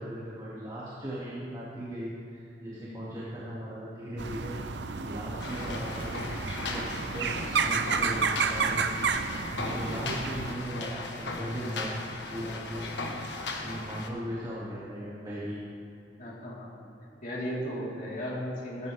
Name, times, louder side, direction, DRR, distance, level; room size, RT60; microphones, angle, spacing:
voice 1, 0.0-4.5 5.0-9.0 9.6-12.0 12.3-12.9 13.6-15.6, equal, 25° right, -8 dB, 2.5 m, -38 dB
sound 1, 4.2-10.6, right 5 dB, 80° right, 0.7 m, -31 dB
sound 2, 5.4-14.1, left 3 dB, 85° left, 1.5 m, -37 dB
voice 2, 16.2-16.7 17.2-18.9, equal, 50° left, -7 dB, 4.2 m, -35 dB
18.0 x 15.0 x 3.6 m, 2.6 s
head